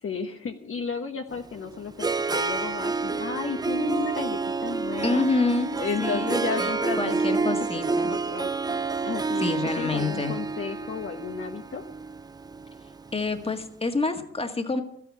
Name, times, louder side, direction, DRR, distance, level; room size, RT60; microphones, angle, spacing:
voice 1, 0.0-5.2 5.7-11.8, left 5 dB, 45° left, 3 dB, 1.3 m, -33 dB
Harp, 1.3-13.5, right 4 dB, 15° right, 0.4 m, -29 dB
voice 2, 5.0-5.7 6.0-6.7 7.0-8.1 9.4-10.4 13.1-14.8, left 3 dB, 20° left, 6 dB, 1.8 m, -27 dB
13.0 x 9.8 x 7.5 m, 0.71 s
cardioid pair, 90°, 30 cm